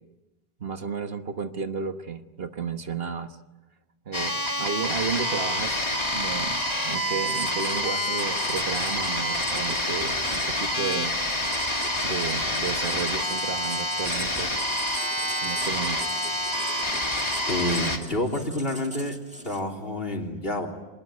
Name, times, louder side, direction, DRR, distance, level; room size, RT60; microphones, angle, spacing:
voice 1, 0.6-3.4 4.0-11.2 12.0-14.5 15.4-16.0, right 5 dB, 65° right, 8 dB, 1.5 m, -33 dB
sound 1, 4.1-18.0, left 1 dB, 25° left, 2.3 m, -27 dB
Writing, 7.2-19.8, equal, 5° right, 1.7 m, -41 dB
voice 2, 17.5-19.2 19.4-20.7, left 1 dB, 60° left, 1 dB, 3.7 m, -28 dB
26.0 x 20.5 x 9.6 m, 1.0 s
omnidirectional pair, 1.1 m